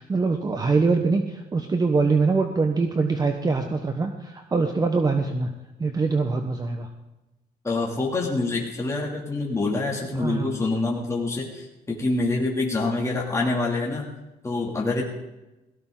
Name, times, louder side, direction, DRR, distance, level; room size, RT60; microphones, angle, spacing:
voice 1, 0.0-5.5 5.8-6.9 10.1-10.5, right 4 dB, 20° right, 5 dB, 1.1 m, -23 dB
voice 2, 7.6-14.1 14.4-15.0, left 3 dB, 15° left, -2 dB, 2.8 m, -26 dB
17.5 x 16.5 x 3.9 m, 1.0 s
cardioid pair, 110°, 17 cm